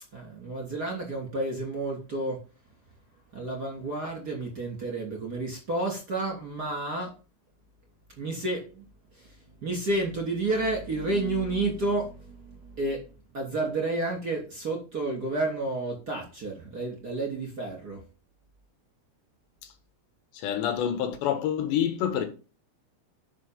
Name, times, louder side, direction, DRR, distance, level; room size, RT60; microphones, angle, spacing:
voice 1, 0.1-2.4 3.3-7.1 8.2-8.8 9.2-9.3 9.6-13.0 13.3-18.0, right 2 dB, 25° right, 3.1 m, -30 dB
voice 2, 20.4-22.3, left 9 dB, 75° left, 3.6 m, -27 dB
12.5 x 6.0 x 5.3 m
omnidirectional pair, 5.1 m